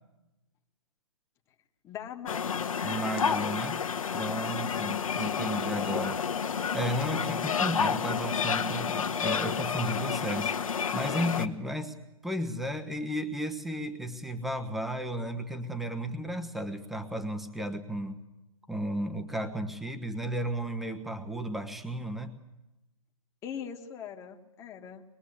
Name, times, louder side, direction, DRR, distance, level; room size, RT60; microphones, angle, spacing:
voice 1, 1.8-2.8 23.4-25.0, left 8 dB, 15° left, 4 dB, 1.7 m, -41 dB
sound 1, 2.3-11.5, left 6 dB, 70° left, 1.5 m, -30 dB
voice 2, 2.8-3.8 4.1-6.2 6.7-11.9 12.2-18.2 18.7-22.3, equal, ahead, 7 dB, 1.2 m, -34 dB
23.5 x 22.0 x 8.4 m, 0.97 s
hypercardioid pair, 145°, 18 cm